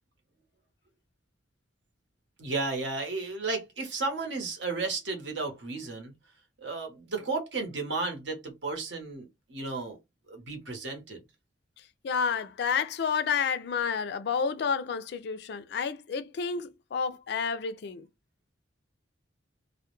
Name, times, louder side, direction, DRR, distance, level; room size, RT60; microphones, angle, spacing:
voice 1, 2.4-6.1 6.6-10.0 10.3-11.2, right 3 dB, 65° right, 0.9 m, -33 dB
voice 2, 12.0-18.1, left 6 dB, 60° left, 0.3 m, -30 dB
2.2 x 2.1 x 3.0 m
head